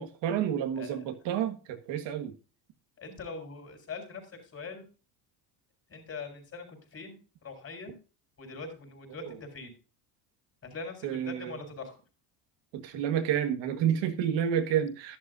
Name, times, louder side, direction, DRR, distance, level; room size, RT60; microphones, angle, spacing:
voice 1, 0.0-2.4 9.2-9.4 11.0-11.6 12.7-15.2, right 9 dB, 70° right, 1.7 m, -30 dB
voice 2, 3.0-4.2 4.5-4.8 5.9-7.2 7.4-7.9 8.4-9.7 10.6-12.0, left 4 dB, 30° left, 5.1 m, -42 dB
12.0 x 11.5 x 2.6 m
cardioid pair, 130°, 46 cm